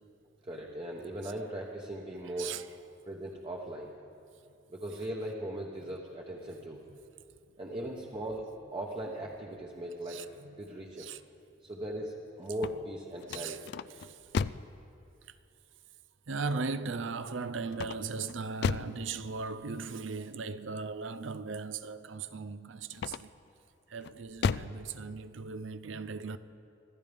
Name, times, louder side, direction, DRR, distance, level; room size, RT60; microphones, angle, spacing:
voice 1, 0.4-2.5 3.1-3.9 4.7-6.8 7.6-8.4 8.7-10.2 10.6-11.1 11.6-13.7, right 1 dB, 25° right, 1.1 m, -39 dB
voice 2, 10.1-10.5 11.0-11.2 13.3-13.6 14.0-14.1 16.3-23.3 23.9-26.4, right 4 dB, 70° right, 0.6 m, -38 dB
sound 1, 12.5-14.8 17.7-19.0 22.9-23.5 24.0-24.8, left 5 dB, 60° left, 0.3 m, -34 dB
25.0 x 15.0 x 3.5 m
head